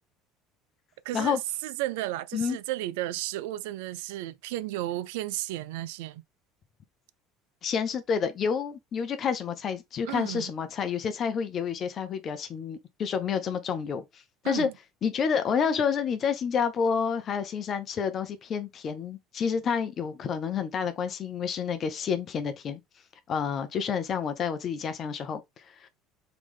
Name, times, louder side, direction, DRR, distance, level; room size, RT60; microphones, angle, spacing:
voice 1, 1.0-6.2 10.1-10.5 14.4-14.7, right 15 dB, 70° right, 0.3 m, -33 dB
voice 2, 7.6-14.7 15.0-22.8 23.3-25.9, left 6 dB, 45° left, 0.7 m, -29 dB
3.9 x 3.0 x 3.5 m
hypercardioid pair, 65°, 0 cm